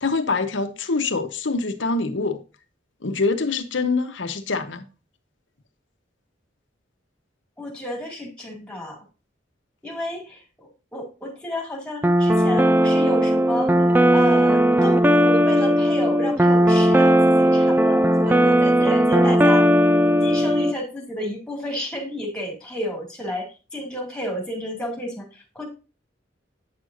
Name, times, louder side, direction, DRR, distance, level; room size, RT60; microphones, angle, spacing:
voice 1, 0.0-2.4 3.0-4.9, left 3 dB, 70° left, 0.9 m, -24 dB
voice 2, 7.6-9.0 9.8-19.7 20.2-25.6, equal, 5° left, 2.3 m, -31 dB
sound 1, 12.0-20.7, equal, 10° right, 0.3 m, -17 dB
8.7 x 6.5 x 2.5 m
head